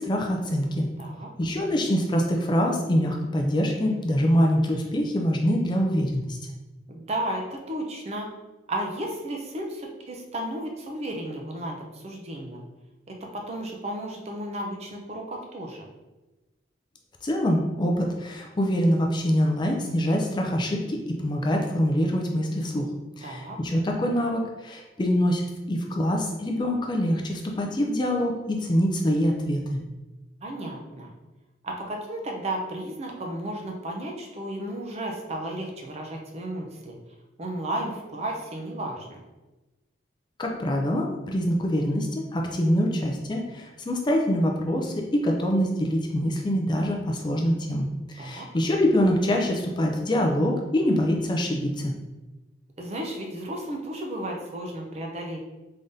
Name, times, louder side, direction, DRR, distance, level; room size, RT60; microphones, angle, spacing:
voice 1, 0.0-0.9 1.4-6.4 17.2-22.9 23.2-29.8 40.4-51.9, equal, 25° left, 1 dB, 0.4 m, -25 dB
voice 2, 1.0-1.3 6.9-8.3 8.7-12.6 13.1-15.9 23.2-23.6 30.4-31.1 31.6-37.0 37.4-39.2 48.2-48.5 52.8-55.4, right 1 dB, 35° right, 1 dB, 0.6 m, -33 dB
3.6 x 3.4 x 2.7 m, 1.1 s
head